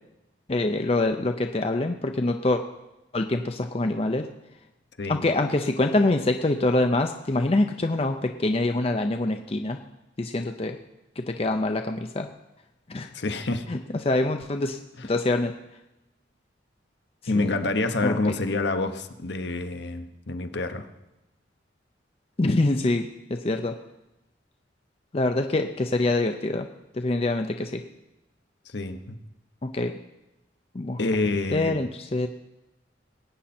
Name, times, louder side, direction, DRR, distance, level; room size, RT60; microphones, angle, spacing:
voice 1, 0.5-2.6 3.1-4.2 5.1-9.8 10.2-10.8 11.3-12.3 12.9-13.1 13.7-13.8 14.0-14.8 15.1-15.5 17.3-17.5 18.0-18.3 22.4-23.1 23.4-23.7 25.1-26.7 26.9-27.8 29.7-29.9 30.7-31.0 31.5-32.3, left 2 dB, 30° left, 5 dB, 0.5 m, -25 dB
voice 2, 13.1-13.6 15.0-15.1 17.3-20.9 28.7-29.2 31.0-31.8, left 2 dB, 65° left, 7 dB, 1.0 m, -27 dB
20.0 x 8.9 x 4.3 m, 0.94 s
head